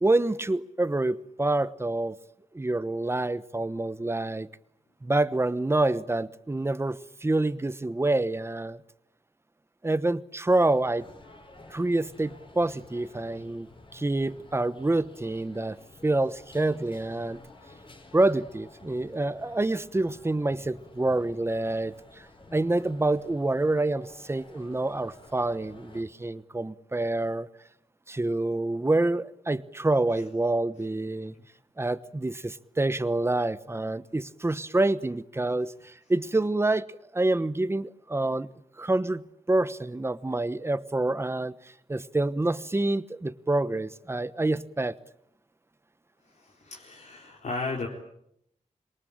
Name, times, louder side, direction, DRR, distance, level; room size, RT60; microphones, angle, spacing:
voice 1, 0.0-2.2 2.5-4.5 5.0-8.8 9.8-11.1 11.7-15.8 16.0-17.4 18.1-22.0 22.5-27.5 28.1-31.3 31.8-36.9 37.1-38.5 38.8-41.5 41.9-45.0, right 2 dB, 20° right, 1.1 m, -27 dB
sound 1, 10.6-26.0, left 2 dB, 40° left, 5.6 m, -51 dB
voice 2, 46.3-47.9, left 3 dB, 65° left, 4.2 m, -35 dB
27.0 x 23.0 x 8.8 m
wide cardioid pair, 115°, 13 cm